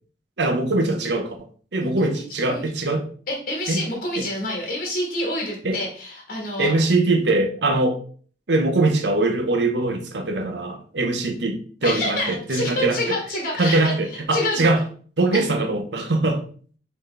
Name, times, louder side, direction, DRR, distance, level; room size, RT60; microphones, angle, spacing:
voice 1, 0.4-1.5 1.7-3.1 3.7-3.8 4.2-4.3 5.6-5.8 6.6-8.0 8.5-13.2 13.6-14.8 15.2-16.4, right 2 dB, 75° right, 5 dB, 0.8 m, -22 dB
voice 2, 1.8-2.6 3.3-6.7 11.8-13.9 14.3-14.6 15.3-15.4, left 1 dB, 55° left, -1 dB, 1.4 m, -27 dB
4.0 x 4.0 x 3.3 m, 0.44 s
head